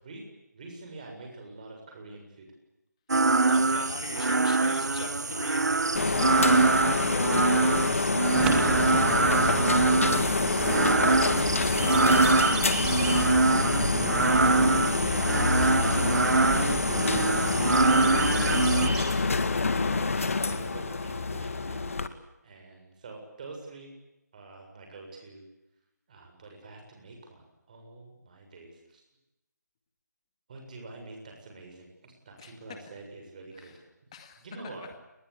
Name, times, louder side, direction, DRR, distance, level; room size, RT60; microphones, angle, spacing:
voice 1, 0.5-2.5 3.3-4.2 7.6-8.0 8.3-9.3 9.8-10.0 10.6-15.2 17.4-19.2 19.9-21.8 22.4-23.9 24.3-25.4 26.1-29.0 30.5-33.7 34.4-34.8, right 3 dB, 25° right, 2 dB, 7.4 m, -45 dB
sound 1, 3.1-18.9, right 3 dB, 65° right, 1.5 m, -24 dB
voice 2, 3.5-7.9 19.7-20.4 32.4-32.5 33.5-33.8 34.1-34.9, left 6 dB, 20° left, 6 dB, 2.2 m, -44 dB
sound 2, 6.0-22.1, left 4 dB, 50° left, 2.3 m, -27 dB
sound 3, 8.3-19.0, right 3 dB, 5° right, 2.3 m, -34 dB
29.0 x 21.5 x 8.6 m, 0.95 s
figure-of-eight pair, 170°, 10 cm